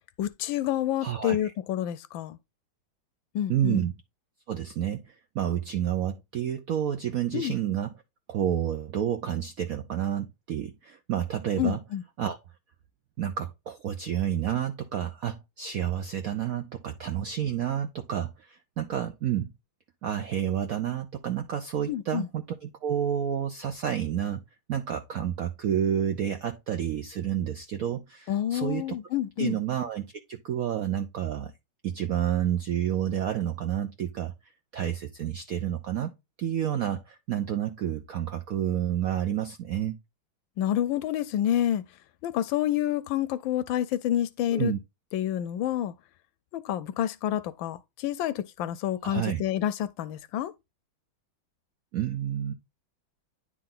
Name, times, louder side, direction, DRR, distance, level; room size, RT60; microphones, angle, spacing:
voice 1, 0.2-2.4 3.3-3.8 7.3-7.5 11.6-12.0 21.9-22.3 28.3-29.6 40.6-41.8 42.2-44.7 45.1-45.9 46.5-50.5, left 11 dB, 75° left, 1.3 m, -28 dB
voice 2, 1.0-1.5 3.5-3.9 4.5-7.9 8.3-11.8 12.2-12.4 13.2-19.5 20.0-24.4 24.7-28.8 29.4-31.5 31.8-34.3 34.7-36.1 36.4-40.0 44.5-44.8 49.0-49.4 51.9-52.5, right 10 dB, 75° right, 0.8 m, -30 dB
9.8 x 3.8 x 3.8 m
omnidirectional pair, 2.2 m